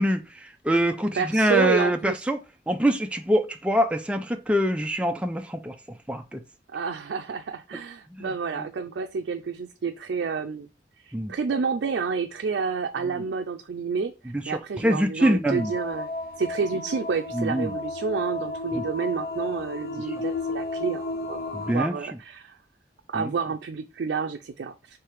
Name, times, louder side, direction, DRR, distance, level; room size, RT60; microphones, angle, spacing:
voice 1, 0.0-2.4 2.7-5.7 6.1-6.4 8.2-8.3 8.6-8.7 11.1-11.3 14.3-15.7 17.3-17.7 18.7-18.8 21.5-21.9 23.1-23.3, equal, 5° right, 0.3 m, -24 dB
voice 2, 1.1-2.2 6.7-10.7 11.0-16.1 16.4-21.4 21.7-22.6 23.1-25.0, right 5 dB, 80° right, 0.4 m, -29 dB
sound 1, 15.4-21.7, left 2 dB, 55° left, 0.5 m, -33 dB
3.3 x 3.2 x 4.6 m
head